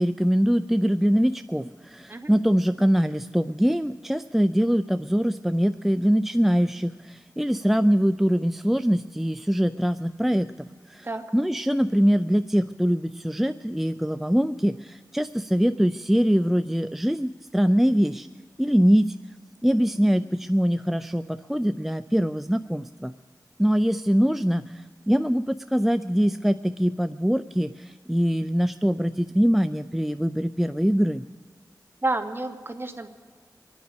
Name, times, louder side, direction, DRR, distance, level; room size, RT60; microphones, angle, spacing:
voice 1, 0.0-10.5 10.9-11.1 11.3-18.3 18.6-19.2 19.6-23.1 23.6-31.2, equal, 5° right, 10 dB, 0.4 m, -23 dB
voice 2, 32.0-33.1, right 2 dB, 35° right, 5 dB, 1.5 m, -29 dB
24.0 x 9.5 x 5.3 m, 1.5 s
wide cardioid pair, 60°, 7 cm